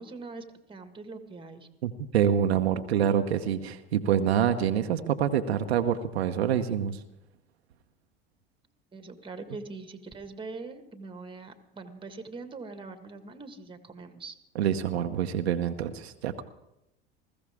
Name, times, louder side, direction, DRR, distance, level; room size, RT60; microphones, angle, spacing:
voice 1, 0.0-1.7 8.9-14.4, right 3 dB, 15° right, 8 dB, 1.7 m, -42 dB
voice 2, 1.8-7.0 14.5-16.4, right 9 dB, 85° right, 7 dB, 0.9 m, -26 dB
20.5 x 15.0 x 3.6 m, 0.88 s
hypercardioid pair, 85°, 31 cm